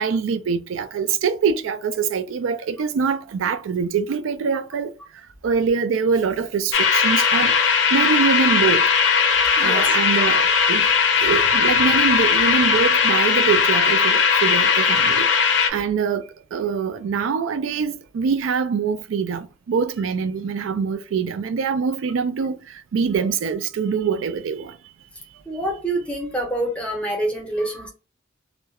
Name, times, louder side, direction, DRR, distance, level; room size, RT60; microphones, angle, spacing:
voice 1, 0.0-4.9 5.4-8.8 9.6-10.9 11.2-15.3 15.7-22.6 22.9-24.7, right 6 dB, 85° right, 0.3 m, -24 dB
sound 1, 6.7-15.7, left 6 dB, 65° left, 0.4 m, -18 dB
voice 2, 9.6-10.0 25.5-27.9, right 1 dB, 5° left, 0.7 m, -26 dB
2.3 x 2.1 x 2.8 m
head